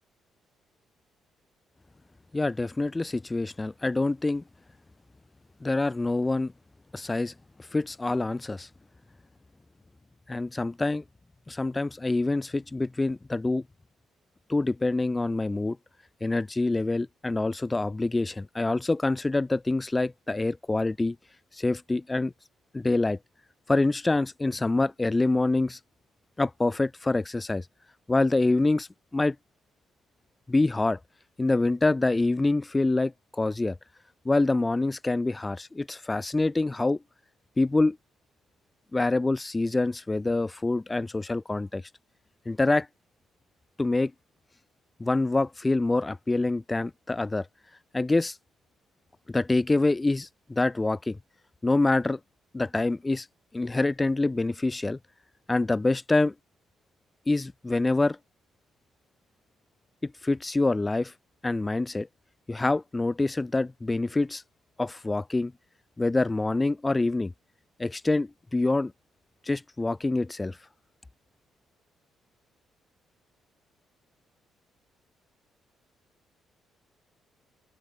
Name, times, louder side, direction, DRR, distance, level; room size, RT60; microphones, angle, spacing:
voice 1, 2.3-4.4 5.6-6.5 6.9-7.3 7.7-8.7 10.3-11.0 11.5-13.6 14.5-15.8 16.2-21.2 21.5-22.3 22.7-23.2 23.7-25.8 26.4-27.7 28.1-29.4 30.5-31.0 31.4-33.8 34.2-37.0 37.6-38.0 38.9-41.8 42.5-42.9 43.8-44.1 45.0-47.5 47.9-48.4 49.3-51.2 51.6-52.2 52.5-53.3 53.5-55.0 55.5-56.3 57.3-58.2 60.0-61.1 61.4-62.1 62.5-64.4 64.8-65.5 66.0-67.3 67.8-68.9 69.4-70.6, left 2 dB, 20° left, 0.8 m, -26 dB
open air
cardioid pair, 90°, 0 cm